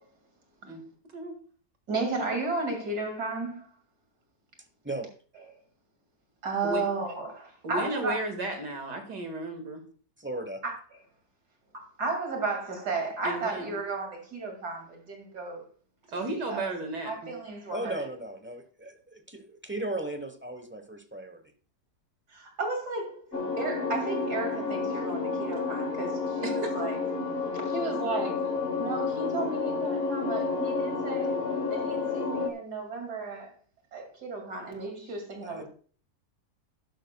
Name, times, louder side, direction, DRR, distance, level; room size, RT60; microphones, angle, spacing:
voice 1, 1.9-3.7 6.4-8.2 10.6-10.7 11.7-15.6 16.1-16.7 17.1-18.0 22.3-23.3 23.6-27.0 27.7-31.3 31.7-33.5 33.9-35.7, right 3 dB, 70° right, 2.9 m, -33 dB
voice 2, 7.6-9.8 13.2-13.7 16.1-17.1 26.4-26.7, right 2 dB, 85° right, 2.5 m, -34 dB
voice 3, 10.2-10.6 17.7-21.5 26.6-26.9 35.4-35.6, right 1 dB, 10° right, 0.6 m, -37 dB
sound 1, 23.3-32.5, left 4 dB, 40° left, 1.3 m, -30 dB
12.0 x 11.0 x 2.2 m
omnidirectional pair, 1.8 m